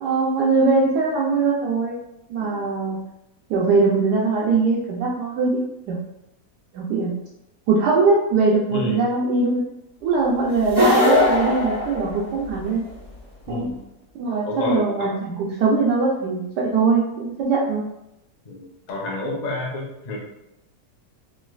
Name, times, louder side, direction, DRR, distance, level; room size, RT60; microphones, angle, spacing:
voice 1, 0.0-2.0 2.3-3.0 3.5-6.0 6.7-7.1 7.7-9.7 10.0-12.8 13.5-13.7 14.1-17.8, right 4 dB, 80° right, -5 dB, 1.2 m, -21 dB
voice 2, 2.4-2.7 8.7-9.0 13.5-13.8 14.4-15.1 18.5-20.2, left 2 dB, 85° left, -2 dB, 0.3 m, -29 dB
sound 1, 10.6-12.7, left 1 dB, 30° right, 0.7 m, -20 dB
3.2 x 3.0 x 2.3 m, 0.87 s
omnidirectional pair, 1.8 m